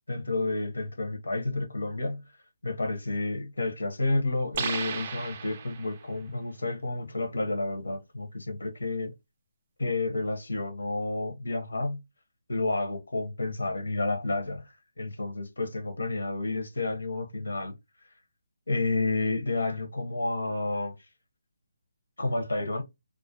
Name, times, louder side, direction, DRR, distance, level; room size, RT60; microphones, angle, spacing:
voice 1, 0.1-2.2 2.6-9.1 9.8-12.0 12.5-14.7 15.0-17.7 18.7-20.9 22.2-22.8, left 2 dB, 85° left, 0.7 m, -30 dB
sound 1, 4.5-6.1, right 6 dB, 40° right, 0.4 m, -35 dB
2.3 x 2.1 x 2.6 m
figure-of-eight pair, 150°, 0 cm